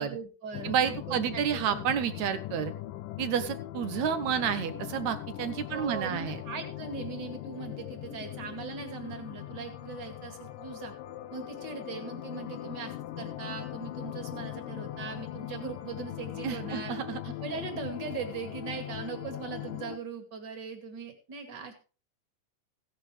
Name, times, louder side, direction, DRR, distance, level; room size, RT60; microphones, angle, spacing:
voice 1, 0.0-1.9 5.7-10.9 11.3-16.9 17.4-21.7, right 5 dB, 35° right, 5 dB, 2.6 m, -40 dB
sound 1, 0.5-20.0, left 13 dB, 85° left, 2.5 m, -40 dB
voice 2, 0.6-2.7 3.2-6.4 16.4-17.2, right 8 dB, 65° right, 11 dB, 2.1 m, -30 dB
16.5 x 9.9 x 3.4 m, 0.34 s
omnidirectional pair, 3.8 m